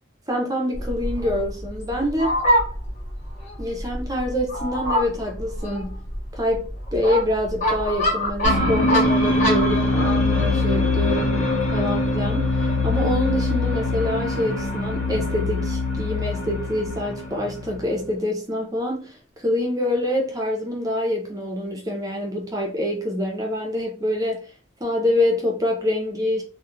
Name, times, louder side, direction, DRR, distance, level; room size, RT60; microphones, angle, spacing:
voice 1, 0.3-2.3 3.6-6.0 6.3-24.4 24.8-26.4, left 1 dB, 15° right, 0.5 m, -26 dB
Fowl, 0.7-9.8, equal, 35° left, 0.7 m, -26 dB
sound 1, 8.4-18.0, left 2 dB, 70° left, 0.7 m, -23 dB
2.3 x 2.1 x 2.9 m
head